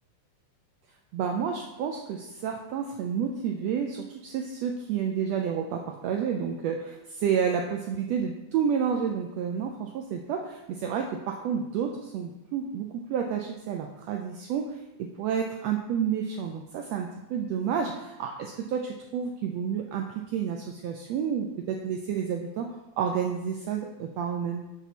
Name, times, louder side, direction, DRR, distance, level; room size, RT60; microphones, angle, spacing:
voice 1, 1.1-14.7 15.2-20.0 20.3-22.7 23.0-24.6, right 7 dB, 75° right, 2 dB, 1.6 m, -30 dB
5.8 x 5.6 x 5.9 m, 0.98 s
omnidirectional pair, 3.3 m